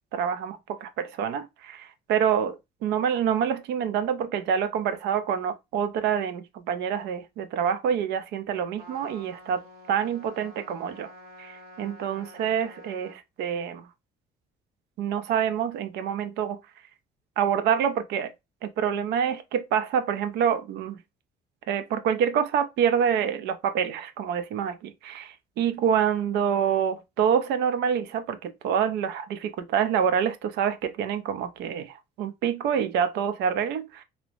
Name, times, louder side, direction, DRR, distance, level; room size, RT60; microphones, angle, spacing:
voice 1, 0.1-11.1 11.4-13.9 15.0-16.6 17.4-18.3 18.6-21.0 21.7-34.0, right 8 dB, 80° right, 0.5 m, -27 dB
Trumpet, 8.8-13.2, equal, 60° right, 1.4 m, -48 dB
2.7 x 2.0 x 3.0 m
cardioid pair, 110°, 17 cm